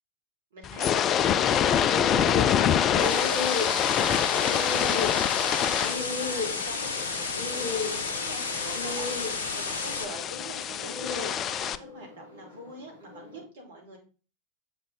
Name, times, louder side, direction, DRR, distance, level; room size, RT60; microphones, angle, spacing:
voice 1, 0.5-14.0, right 1 dB, 60° right, 0 dB, 2.9 m, -45 dB
sound 1, 0.6-11.8, left 9 dB, 30° left, 0.4 m, -27 dB
sound 2, 1.9-13.4, left 4 dB, 80° right, 3.0 m, -36 dB
sound 3, 3.0-10.0, left 3 dB, 70° left, 0.8 m, -33 dB
7.4 x 5.1 x 3.9 m, 0.36 s
figure-of-eight pair, 90°, 0 cm